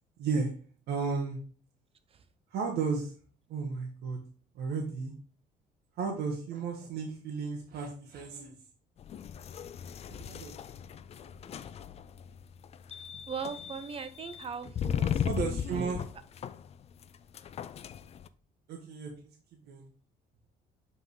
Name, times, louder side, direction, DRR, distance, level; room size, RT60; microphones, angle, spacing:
voice 1, 0.2-0.5 0.9-1.4 2.5-3.1 3.5-4.2 4.5-5.1 6.0-8.5 10.1-10.5 15.2-16.0 18.7-19.3 19.7-19.9, right 5 dB, 75° right, 0 dB, 1.3 m, -34 dB
sound 1, 9.0-18.3, left 8 dB, 40° left, 0.4 m, -37 dB
voice 2, 13.3-15.4 15.7-16.0, right 6 dB, 35° right, 11 dB, 0.7 m, -40 dB
5.6 x 3.7 x 4.7 m, 0.41 s
cardioid pair, 110°, 17 cm